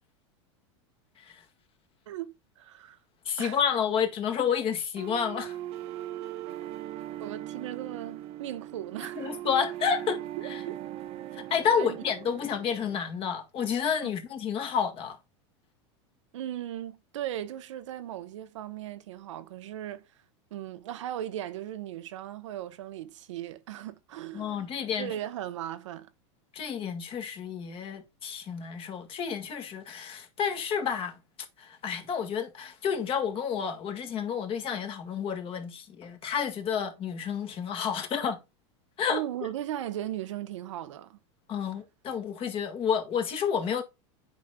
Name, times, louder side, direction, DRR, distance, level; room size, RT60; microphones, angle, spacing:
voice 1, 2.1-3.0 3.4-3.6 7.2-9.3 10.4-10.7 11.8-12.0 14.0-14.1 16.3-20.1 20.5-24.7 25.0-26.1 39.1-41.2, right 12 dB, 85° right, 0.9 m, -37 dB
voice 2, 3.3-5.6 9.2-10.6 11.3-15.2 24.3-25.1 26.5-31.2 31.6-38.4 39.0-39.2 41.5-43.8, left 7 dB, 35° left, 1.8 m, -30 dB
sound 1, 5.0-13.0, right 13 dB, 40° right, 0.7 m, -39 dB
9.0 x 5.4 x 2.3 m
supercardioid pair, 120°, 15 cm